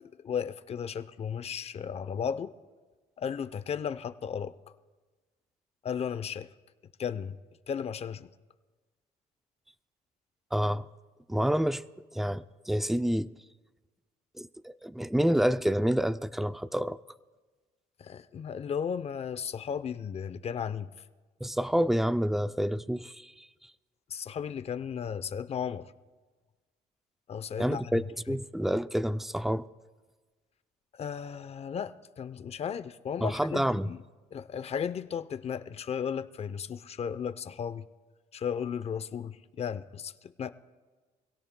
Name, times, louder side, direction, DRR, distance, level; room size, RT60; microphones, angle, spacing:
voice 1, 0.0-2.5 3.2-4.5 5.8-6.5 7.0-7.4 7.7-8.3 18.0-20.9 24.1-25.9 27.3-28.0 28.3-28.4 30.9-34.0 34.3-37.8 38.3-40.5, left 7 dB, 35° left, 0.6 m, -35 dB
voice 2, 10.5-10.9 11.3-11.8 12.1-13.3 14.4-17.0 21.4-23.5 27.6-29.7 33.2-33.9, equal, ahead, 0.4 m, -28 dB
25.5 x 17.0 x 2.2 m
cardioid pair, 110°, 17 cm